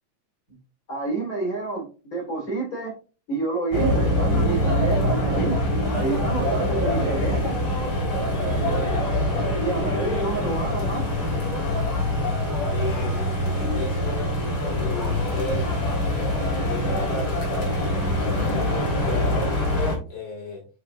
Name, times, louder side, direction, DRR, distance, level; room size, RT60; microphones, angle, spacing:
voice 1, 0.9-2.9 3.3-5.6 5.9-7.6 9.6-11.1, right 3 dB, 25° left, -3 dB, 5.0 m, -29 dB
sound 1, 3.7-20.0, left 1 dB, 45° left, 4.6 m, -24 dB
voice 2, 12.7-13.2 13.7-15.7 16.0-18.6 19.0-20.6, left 3 dB, 65° left, -4 dB, 3.5 m, -34 dB
8.0 x 6.5 x 2.8 m, 0.35 s
omnidirectional pair, 4.0 m